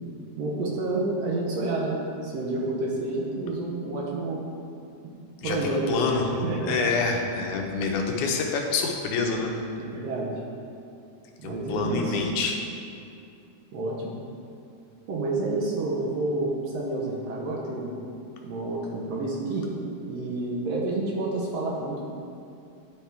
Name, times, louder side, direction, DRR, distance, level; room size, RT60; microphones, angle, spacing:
voice 1, 0.4-4.4 5.4-6.8 9.8-10.3 11.4-12.2 13.7-14.2 15.1-17.9 18.4-19.7 20.0-22.1, right 2 dB, 70° right, -3 dB, 1.7 m, -29 dB
voice 2, 5.4-6.3 6.7-9.5 11.4-12.6, left 4 dB, 90° left, 2 dB, 2.2 m, -27 dB
11.0 x 4.3 x 3.4 m, 2.6 s
omnidirectional pair, 3.5 m